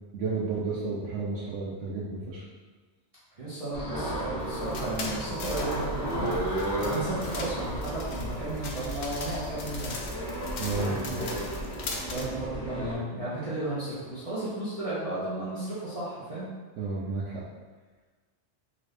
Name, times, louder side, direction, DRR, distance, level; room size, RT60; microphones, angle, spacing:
voice 1, 0.1-2.4 10.6-10.9 16.8-17.4, right 3 dB, 85° right, -6 dB, 0.9 m, -32 dB
voice 2, 3.4-9.9 10.8-11.5 12.1-16.5, right 2 dB, 35° right, -11 dB, 0.9 m, -34 dB
sound 1, 3.7-12.9, right 1 dB, 20° left, 1.1 m, -33 dB
sound 2, 4.4-12.3, left 3 dB, 60° left, 0.5 m, -40 dB
3.9 x 2.6 x 3.2 m, 1.4 s
omnidirectional pair, 1.2 m